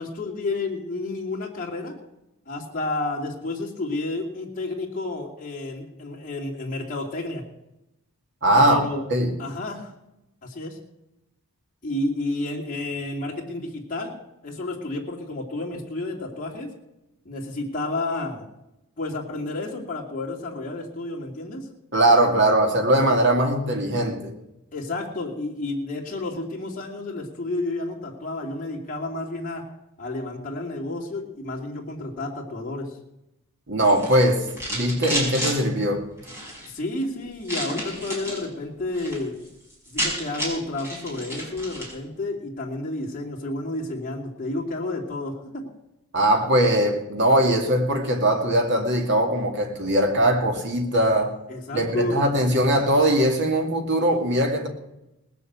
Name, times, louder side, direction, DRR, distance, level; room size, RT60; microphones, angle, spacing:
voice 1, 0.0-2.0 2.5-7.4 8.5-9.1 9.4-9.9 10.4-10.8 11.8-14.2 14.4-16.7 17.2-18.4 19.0-21.7 24.7-29.7 30.0-33.0 36.6-39.4 39.9-45.7 51.5-52.3, left 2 dB, 35° left, -4 dB, 2.7 m, -31 dB
voice 2, 8.4-8.8 9.1-9.3 21.9-24.3 33.7-36.0 46.1-51.3 51.7-54.7, right 1 dB, 55° right, 3 dB, 2.5 m, -20 dB
sound 1, 33.8-35.6 36.2-36.7 37.4-38.4 38.8-39.2 39.5-39.6 39.7-42.0, equal, 10° right, 5.4 m, -31 dB
19.5 x 6.9 x 8.1 m, 0.91 s
head